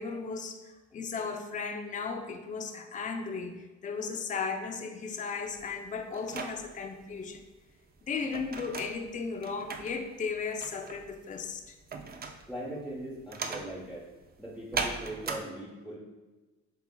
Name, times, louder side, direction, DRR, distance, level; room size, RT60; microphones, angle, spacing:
voice 1, 0.0-7.4 8.0-11.7, left 5 dB, 25° left, 4 dB, 0.5 m, -36 dB
sound 1, 5.5-15.4, right 4 dB, 30° right, 0.5 m, -39 dB
voice 2, 12.5-14.1 14.4-16.0, right 1 dB, ahead, -6 dB, 0.9 m, -40 dB
7.7 x 2.8 x 2.2 m, 1.2 s
cardioid pair, 90°, 30 cm